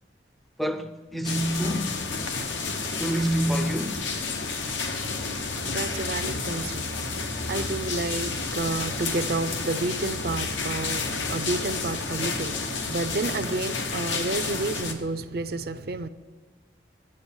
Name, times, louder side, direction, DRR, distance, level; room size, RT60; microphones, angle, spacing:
voice 1, 0.6-2.0 3.0-4.0 6.4-6.5, right 1 dB, ahead, 0.5 m, -27 dB
sound 1, 1.2-14.9, left 4 dB, 85° left, 1.0 m, -30 dB
voice 2, 4.8-16.1, right 3 dB, 55° right, 0.5 m, -31 dB
9.7 x 7.9 x 7.1 m
head